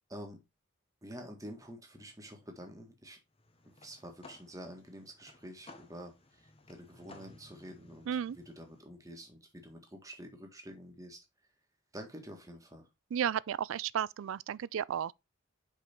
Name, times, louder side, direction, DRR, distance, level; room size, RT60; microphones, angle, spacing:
voice 1, 0.1-0.4 1.0-3.2 3.8-8.1 8.4-11.2 11.9-12.9, equal, 15° right, 1.7 m, -48 dB
sound 1, 3.3-8.8, left 2 dB, 30° left, 1.0 m, -58 dB
voice 2, 8.1-8.4 13.1-15.1, right 8 dB, 75° right, 0.3 m, -33 dB
5.5 x 5.2 x 4.4 m
head